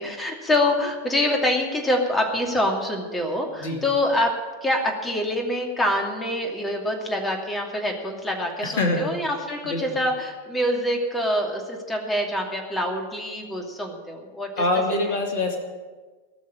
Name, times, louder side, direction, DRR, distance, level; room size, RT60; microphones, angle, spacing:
voice 1, 0.0-4.3 4.6-14.6 15.0-15.2, left 1 dB, 10° left, 2 dB, 2.6 m, -25 dB
voice 2, 8.6-9.1 9.6-10.0 14.6-15.6, left 2 dB, 55° left, 3 dB, 2.7 m, -24 dB
18.5 x 6.4 x 9.7 m, 1.4 s
figure-of-eight pair, 90°, 0 cm